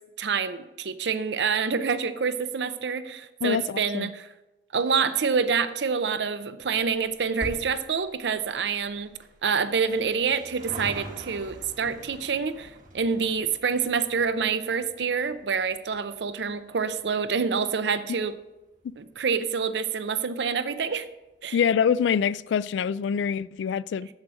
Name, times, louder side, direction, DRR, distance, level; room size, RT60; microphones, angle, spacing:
voice 1, 0.2-4.3 4.7-9.1 9.4-18.3 19.0-21.1 21.4-21.6, right 5 dB, 70° right, 0.6 m, -27 dB
voice 2, 3.4-4.1 21.5-24.1, left 7 dB, 90° left, 0.3 m, -25 dB
sound 1, 6.6-19.4 19.7-19.8 20.7-20.8 21.0-21.1 21.3-21.4, right 1 dB, 50° right, 1.4 m, -45 dB
7.6 x 7.3 x 6.1 m
head